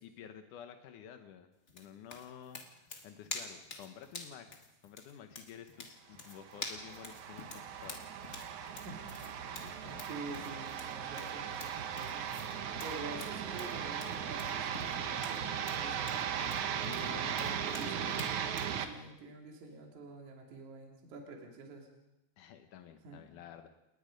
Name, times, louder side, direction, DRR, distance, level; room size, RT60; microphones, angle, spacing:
voice 1, 0.0-4.5 4.8-8.4 9.0-9.1 9.4-10.1 16.8-17.7 22.4-23.7, left 9 dB, 80° left, 7 dB, 1.8 m, -51 dB
sound 1, 1.7-18.8, left 3 dB, 45° left, 0.8 m, -48 dB
sound 2, 6.3-18.9, right 8 dB, 75° right, 1.7 m, -38 dB
voice 2, 8.8-9.5 10.0-16.5 17.3-18.3 18.7-21.9 23.0-23.3, right 2 dB, 45° right, 1 dB, 3.7 m, -48 dB
30.0 x 19.0 x 5.2 m, 0.94 s
omnidirectional pair, 5.2 m